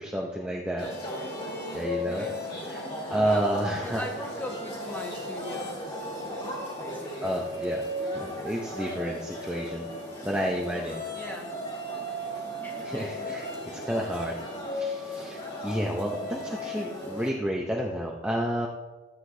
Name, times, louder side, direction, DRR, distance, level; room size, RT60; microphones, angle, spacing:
voice 1, 0.0-1.3 1.7-2.3 2.7-2.9 3.1-4.0 7.2-9.9 10.2-11.0 12.8-14.4 14.7-18.7, right 1 dB, 5° right, -2 dB, 0.6 m, -31 dB
sound 1, 0.8-17.3, left 1 dB, 30° left, 2.0 m, -35 dB
voice 2, 2.0-2.4 2.7-3.5 3.8-6.0 6.8-7.4 11.1-11.6 12.6-13.9 16.0-16.4, equal, 10° left, 0 dB, 1.3 m, -41 dB
13.0 x 8.0 x 2.7 m, 1.2 s
head